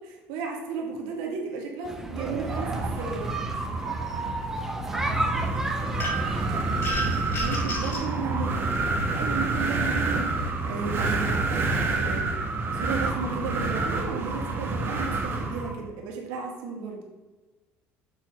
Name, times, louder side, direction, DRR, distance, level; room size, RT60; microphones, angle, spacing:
voice 1, 0.1-3.4 7.3-8.6 9.1-12.3 12.7-17.0, right 5 dB, 90° right, 0 dB, 1.8 m, -34 dB
sound 1, 1.8-6.9, right 1 dB, 5° right, 0.9 m, -34 dB
Wind, 2.1-15.8, right 3 dB, 45° right, 1.3 m, -28 dB
sound 2, 6.0-6.4 6.8-8.1, equal, 45° left, 2.5 m, -32 dB
6.9 x 4.3 x 5.6 m, 1.2 s
cardioid pair, 100°, 5 cm